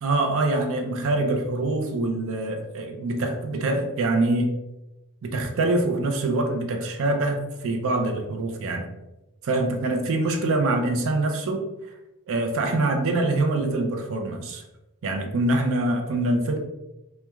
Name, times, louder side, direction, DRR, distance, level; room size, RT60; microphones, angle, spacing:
voice 1, 0.0-4.5 5.2-8.9 9.4-11.7 12.3-14.6 15.0-16.6, right 2 dB, 65° right, 4 dB, 0.4 m, -24 dB
2.9 x 2.2 x 2.2 m, 0.98 s
head